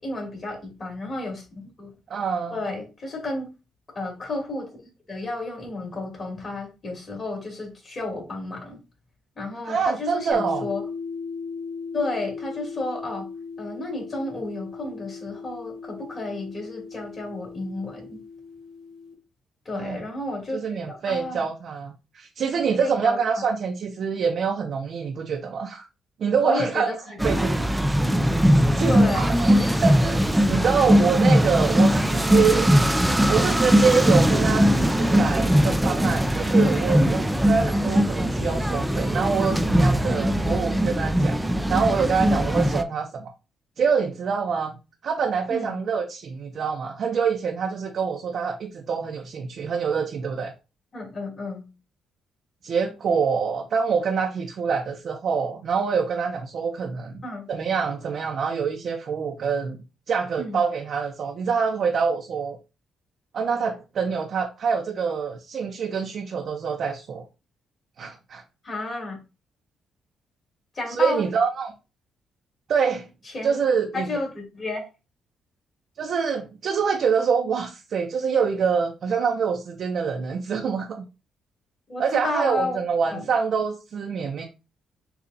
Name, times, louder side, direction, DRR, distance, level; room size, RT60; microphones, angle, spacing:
voice 1, 0.0-1.9 2.5-3.5 3.9-8.8 9.4-10.8 11.9-13.3 13.6-18.2 19.6-21.5 22.5-23.4 26.4-27.5 28.8-29.4 37.0-37.3 45.5-45.8 50.9-51.7 57.2-57.5 60.4-60.6 68.6-69.2 70.7-71.2 73.2-73.6 73.9-74.9 81.9-82.8 83.1-83.2, left 2 dB, 35° left, 2.6 m, -32 dB
voice 2, 2.1-2.6 9.7-10.6 19.7-20.0 20.5-25.9 26.2-26.9 27.2-27.7 28.8-32.7 33.3-37.2 37.5-41.4 41.7-43.3 43.8-44.8 45.0-50.5 52.6-57.2 57.5-59.8 60.1-62.6 63.3-67.2 68.0-68.4 70.9-71.7 72.7-73.1 73.4-74.1 76.0-81.0 82.0-84.4, right 6 dB, 60° right, 0.6 m, -25 dB
sound 1, 10.3-19.1, left 5 dB, 85° left, 1.4 m, -38 dB
sound 2, 27.2-42.8, equal, 5° right, 0.4 m, -20 dB
6.8 x 2.4 x 2.7 m
cardioid pair, 90°, 0 cm